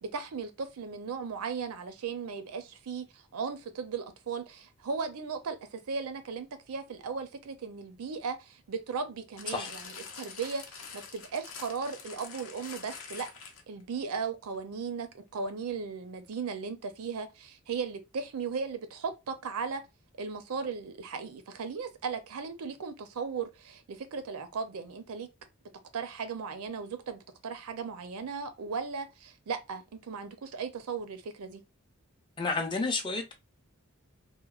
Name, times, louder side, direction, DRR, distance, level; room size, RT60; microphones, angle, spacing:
voice 1, 0.0-13.3 13.7-19.8 20.2-25.3 25.9-31.6, right 5 dB, 80° right, 0.5 m, -37 dB
sound 1, 9.4-13.8 14.5-14.6, left 5 dB, 65° left, 0.6 m, -45 dB
voice 2, 32.4-33.3, left 3 dB, 20° left, 0.4 m, -30 dB
2.9 x 2.1 x 2.3 m
head